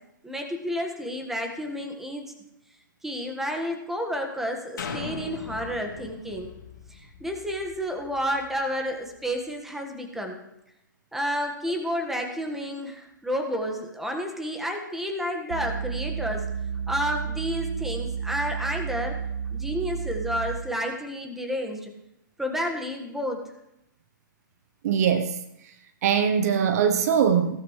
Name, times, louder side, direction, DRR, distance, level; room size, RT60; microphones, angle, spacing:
voice 1, 0.2-2.3 3.0-6.5 6.9-10.4 11.1-16.5 16.9-19.2 19.5-21.9 22.4-23.4, equal, 5° right, 2 dB, 1.5 m, -30 dB
sound 1, 4.8-8.6 9.1-9.2, left 5 dB, 70° left, 2.2 m, -39 dB
sound 2, 15.5-20.8, right 7 dB, 70° right, 0.5 m, -31 dB
voice 2, 24.8-25.4 26.0-27.6, right 7 dB, 50° right, 9 dB, 0.8 m, -22 dB
16.5 x 13.5 x 3.2 m, 0.84 s
hypercardioid pair, 140°, 11 cm